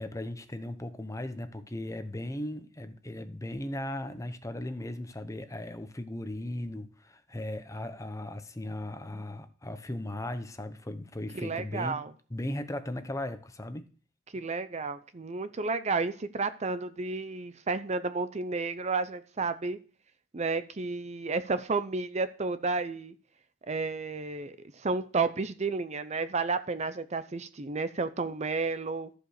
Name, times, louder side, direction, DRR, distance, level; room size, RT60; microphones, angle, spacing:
voice 1, 0.0-12.0 12.3-13.9, left 1 dB, 15° left, 0.8 m, -37 dB
voice 2, 11.3-12.1 14.3-19.8 20.3-23.1 23.7-29.1, right 4 dB, 35° right, 0.6 m, -32 dB
14.0 x 5.0 x 6.5 m
head